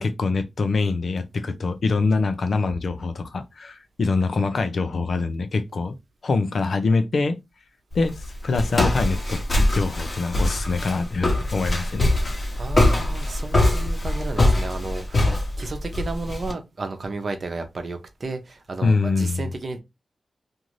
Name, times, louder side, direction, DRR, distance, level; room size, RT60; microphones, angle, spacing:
voice 1, 0.0-6.0 6.2-7.4 7.9-12.1 18.8-19.4, left 3 dB, 65° left, 0.5 m, -24 dB
Walk footsteps, 7.9-16.5, left 1 dB, 45° left, 1.1 m, -23 dB
voice 2, 12.6-19.8, right 3 dB, 55° right, 0.8 m, -33 dB
2.6 x 2.5 x 3.0 m
cardioid pair, 50°, 0 cm